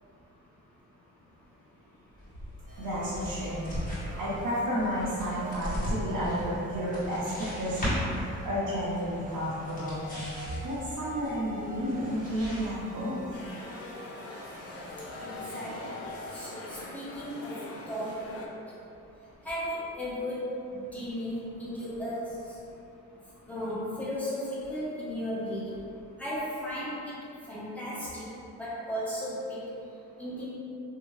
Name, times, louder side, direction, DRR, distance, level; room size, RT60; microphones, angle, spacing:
sound 1, 2.2-12.7, equal, 25° left, 1.2 m, -38 dB
sound 2, 2.7-16.4, left 1 dB, 25° right, 0.6 m, -46 dB
voice 1, 2.8-13.2, equal, 70° right, -11 dB, 0.8 m, -32 dB
sound 3, 13.3-18.5, left 2 dB, 45° left, 0.4 m, -43 dB
voice 2, 15.2-15.7 16.3-17.6 17.9-18.4 19.4-20.4 20.9-22.3 23.5-25.8 26.2-27.0 27.5-28.2 28.6-29.6 30.2-30.5, equal, 5° left, -10 dB, 1.0 m, -35 dB
2.7 x 2.1 x 3.1 m, 2.7 s
cardioid pair, 75°, 33 cm